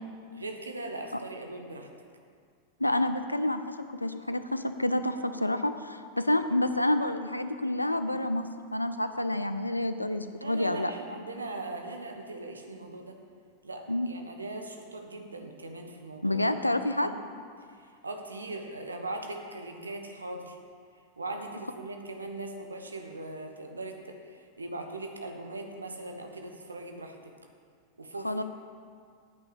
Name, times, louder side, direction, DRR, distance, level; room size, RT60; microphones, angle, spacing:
voice 1, 0.3-1.9 10.4-13.2 13.6-16.4 17.0-17.2 17.6-20.6 21.2-27.3 28.0-28.4, right 2 dB, 75° right, 4 dB, 1.0 m, -40 dB
voice 2, 2.8-3.7 4.0-10.9 13.9-14.1 16.2-17.1 28.2-28.4, left 1 dB, 85° left, 10 dB, 0.5 m, -28 dB
9.2 x 5.7 x 7.5 m, 2.1 s
figure-of-eight pair, 90°, 0 cm